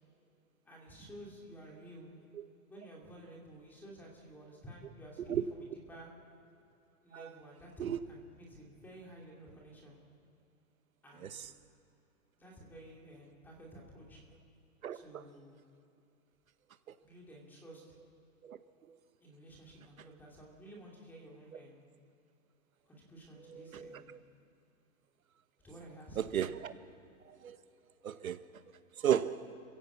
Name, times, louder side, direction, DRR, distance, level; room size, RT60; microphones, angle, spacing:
voice 1, 0.6-2.1 2.7-6.1 7.0-10.0 11.0-11.4 12.4-14.2 14.9-15.6 17.0-17.8 19.2-21.8 22.9-24.1 25.6-26.2, right 1 dB, 5° left, 2.6 m, -52 dB
voice 2, 14.8-15.2 18.4-18.6 23.5-24.2 26.2-26.7 27.4-27.6 28.0-28.4 29.0-29.4, right 9 dB, 65° right, 1.1 m, -34 dB
27.0 x 16.0 x 8.3 m
hypercardioid pair, 175°, 45 cm